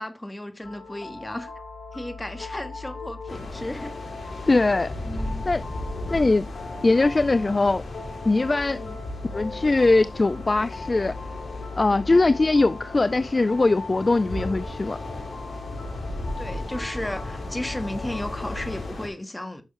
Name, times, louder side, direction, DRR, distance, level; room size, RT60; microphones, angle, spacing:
voice 1, 0.0-1.5 1.9-4.0 5.0-5.5 8.7-9.0 16.4-19.6, left 1 dB, 15° left, 1.5 m, -34 dB
sound 1, 0.6-18.9, left 4 dB, 85° left, 4.2 m, -39 dB
sound 2, 3.3-19.1, left 1 dB, 70° left, 4.8 m, -36 dB
voice 2, 4.5-4.9 5.5-5.6 6.1-6.5 6.8-7.8 8.3-8.8 9.3-11.1 11.7-15.0, left 3 dB, 30° left, 0.4 m, -21 dB
9.7 x 6.4 x 3.1 m
wide cardioid pair, 105°, 0 cm